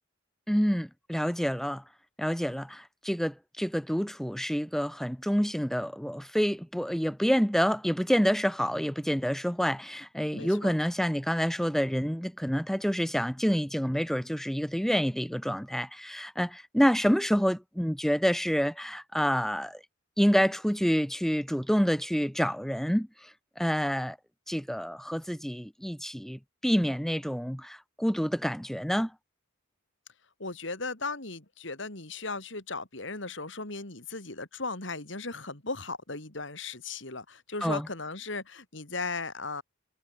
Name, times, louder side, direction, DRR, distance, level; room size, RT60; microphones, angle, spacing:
voice 1, 0.5-1.8 2.2-19.8 20.2-24.2 24.5-29.1 37.6-37.9, equal, ahead, 2.1 m, -28 dB
voice 2, 10.3-10.7 30.4-39.6, left 3 dB, 60° left, 3.5 m, -37 dB
head